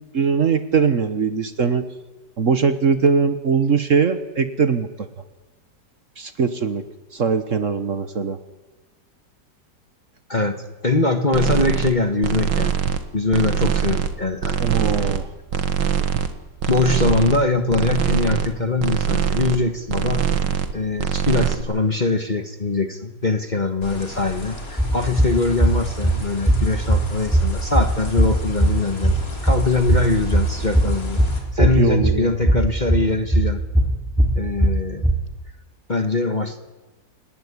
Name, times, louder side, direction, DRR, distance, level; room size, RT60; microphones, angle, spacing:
voice 1, 0.1-1.9 2.4-4.9 6.2-6.8 7.1-8.4 14.6-15.3 31.6-32.3, right 5 dB, 50° right, 10 dB, 1.4 m, -21 dB
voice 2, 10.3-12.7 13.1-14.6 15.0-15.1 16.7-20.5 20.7-29.2 29.4-31.2 31.5-33.6 34.4-35.0 35.9-36.6, left 3 dB, 30° left, 7 dB, 1.2 m, -22 dB
sound 1, 11.3-11.9 12.2-13.0 13.3-14.1 14.4-15.2 15.5-16.3 16.6-17.4 17.7-18.5 18.8-19.6 19.9-20.7 21.0-21.6, right 7 dB, 75° right, 2.1 m, -22 dB
sound 2, 23.8-31.4, left 2 dB, 50° left, 4.2 m, -34 dB
sound 3, 24.8-35.1, right 1 dB, 5° right, 2.7 m, -20 dB
30.0 x 18.0 x 9.8 m, 1.2 s
omnidirectional pair, 2.0 m